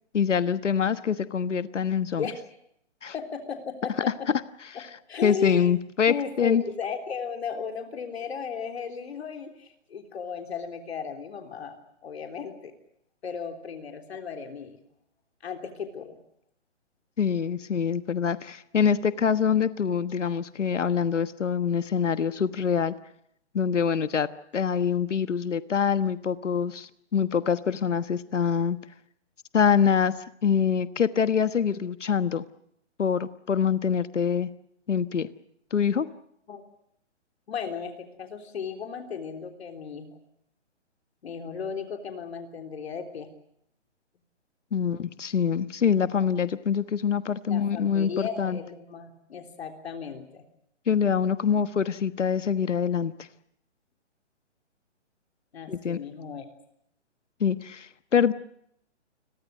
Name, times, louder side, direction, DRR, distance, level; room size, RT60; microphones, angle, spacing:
voice 1, 0.1-2.3 3.0-3.1 4.8-4.9 5.2-6.6 17.2-22.9 23.5-24.3 24.5-28.8 29.5-30.1 30.4-32.4 33.0-34.5 34.9-35.3 35.7-36.1 44.7-48.6 50.9-53.1 55.7-56.0 57.4-58.3, left 7 dB, 85° left, 13 dB, 1.3 m, -25 dB
voice 2, 3.1-4.3 4.7-5.7 6.1-12.7 13.2-14.8 15.4-16.2 36.5-36.6 37.5-40.2 41.2-43.3 47.5-50.4 55.5-56.5, left 6 dB, 60° left, 5 dB, 3.5 m, -35 dB
29.5 x 22.0 x 6.5 m, 0.75 s
hypercardioid pair, 155°, 35 cm